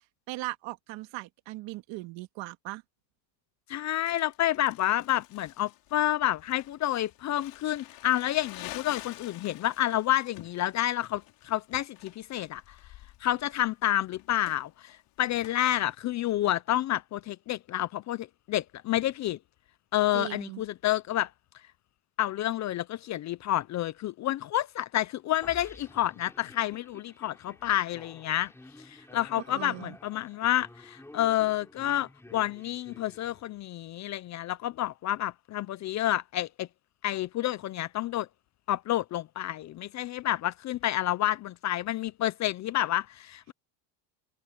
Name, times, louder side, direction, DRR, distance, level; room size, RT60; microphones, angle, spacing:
voice 1, 0.3-2.8 20.1-20.6 29.4-30.0, right 19 dB, 60° right, 2.1 m, -38 dB
voice 2, 3.7-12.8 13.2-19.4 19.9-21.3 22.2-28.5 28.8-36.7 37.0-38.3 38.7-43.5, left 13 dB, 35° left, 0.5 m, -29 dB
Crumpling crinkling, 4.1-15.6, left 16 dB, 60° left, 5.7 m, -49 dB
sound 1, 25.4-33.7, left 1 dB, 5° left, 4.7 m, -52 dB
cardioid pair, 135°, 49 cm